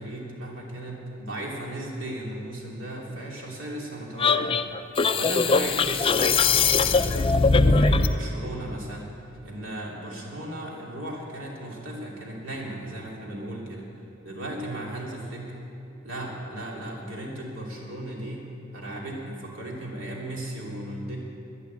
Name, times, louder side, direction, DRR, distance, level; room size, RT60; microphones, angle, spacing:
voice 1, 0.0-4.8 5.1-9.1 9.4-13.8 14.2-15.5 16.0-18.4 18.7-21.2, right 1 dB, 70° right, -2 dB, 3.1 m, -36 dB
sound 1, 4.2-8.2, left 4 dB, 25° left, 0.4 m, -21 dB
11.5 x 10.5 x 9.6 m, 2.7 s
head